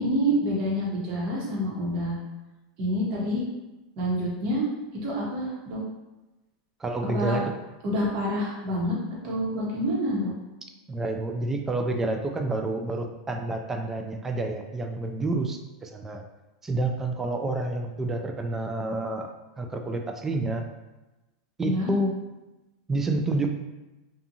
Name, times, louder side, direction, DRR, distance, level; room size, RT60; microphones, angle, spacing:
voice 1, 0.0-2.2 2.8-3.4 4.0-4.7 5.0-5.8 7.1-7.4 7.8-9.0 9.2-10.3 21.6-21.9, equal, 45° right, -4 dB, 1.0 m, -27 dB
voice 2, 6.8-7.5 10.9-16.2 16.6-19.3 19.6-20.6 21.6-22.1 22.9-23.5, right 2 dB, 15° right, 4 dB, 0.3 m, -29 dB
2.6 x 2.3 x 2.7 m, 1.0 s
supercardioid pair, 125°, 2 cm